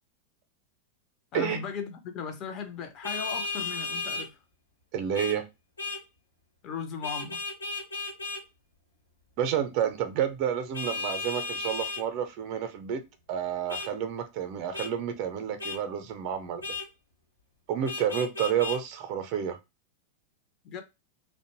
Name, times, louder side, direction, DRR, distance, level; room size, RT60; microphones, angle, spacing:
voice 1, 1.3-4.4 6.6-7.4 20.6-20.8, left 6 dB, 35° left, 0.5 m, -37 dB
Vehicle horn car horn honking, 3.0-4.3 5.1-5.4 5.8-6.0 7.0-8.4 10.7-12.0 13.7-13.9 14.7-14.9 15.6-15.8 16.6-16.9 17.8-18.8, left 3 dB, 75° left, 0.7 m, -34 dB
voice 2, 4.9-5.5 9.4-13.0 13.3-16.7 17.7-19.6, right 9 dB, 45° right, 0.5 m, -30 dB
2.5 x 2.1 x 2.9 m
figure-of-eight pair, 90°, 0 cm